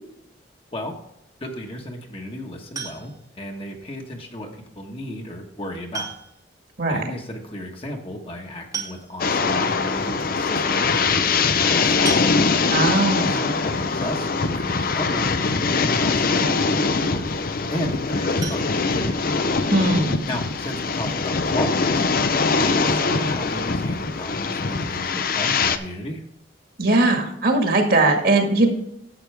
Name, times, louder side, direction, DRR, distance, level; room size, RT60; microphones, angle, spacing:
voice 1, 1.4-6.1 6.9-12.2 13.1-17.4 17.7-19.2 20.2-22.1 22.6-26.2, left 1 dB, 30° left, 2 dB, 1.4 m, -33 dB
sound 1, 2.8-3.4 4.9-5.0 5.9-6.6 6.9-7.0 7.2-7.3 8.3-8.4 8.7-9.5 10.0-10.1 10.4-10.6 12.1-12.9 18.4-19.6 20.0-20.1 20.5-20.6 20.9-21.0, right 5 dB, 20° right, 1.1 m, -35 dB
sound 2, 9.2-25.8, left 4 dB, 50° left, 0.7 m, -22 dB
voice 2, 12.7-13.4 19.7-20.2 26.8-28.7, right 2 dB, 55° right, 3 dB, 1.8 m, -19 dB
11.0 x 7.8 x 3.5 m, 0.77 s
head